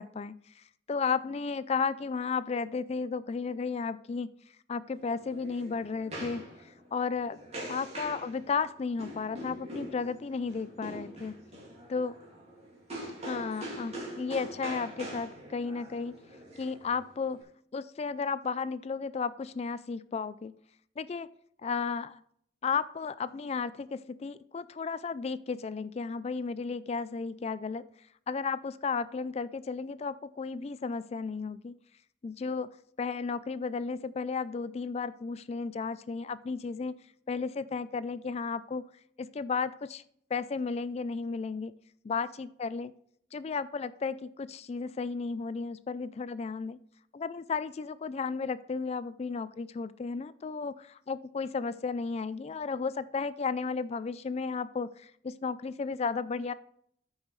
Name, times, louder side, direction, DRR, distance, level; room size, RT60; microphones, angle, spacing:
voice 1, 0.0-4.3 4.7-6.4 6.9-7.4 7.7-11.3 11.9-12.1 13.3-16.1 16.6-17.4 17.7-20.5 21.0-21.3 21.6-22.2 22.6-27.8 28.3-31.7 32.2-32.7 33.0-36.9 37.3-38.8 39.2-40.0 40.3-41.7 42.0-42.9 43.3-46.8 47.1-56.5, left 5 dB, 35° left, 16 dB, 0.3 m, -34 dB
sound 1, 4.9-17.4, right 1 dB, 35° right, 2.2 m, -43 dB
13.5 x 5.5 x 3.1 m, 0.66 s
head